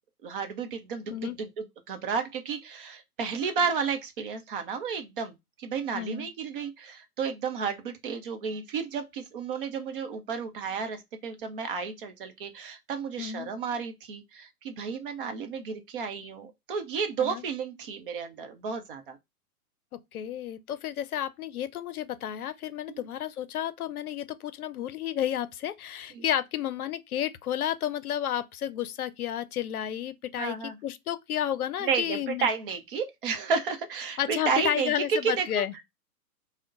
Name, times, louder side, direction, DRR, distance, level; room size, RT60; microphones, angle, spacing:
voice 1, 0.2-5.3 5.6-19.2 22.9-23.0 26.1-26.2 30.4-30.8 31.8-35.6, right 6 dB, 35° right, 0.7 m, -32 dB
voice 2, 5.9-6.3 13.2-13.5 17.2-17.4 19.9-32.5 34.2-35.7, left 11 dB, 75° left, 0.6 m, -32 dB
3.6 x 2.1 x 3.8 m
hypercardioid pair, 130°, 45 cm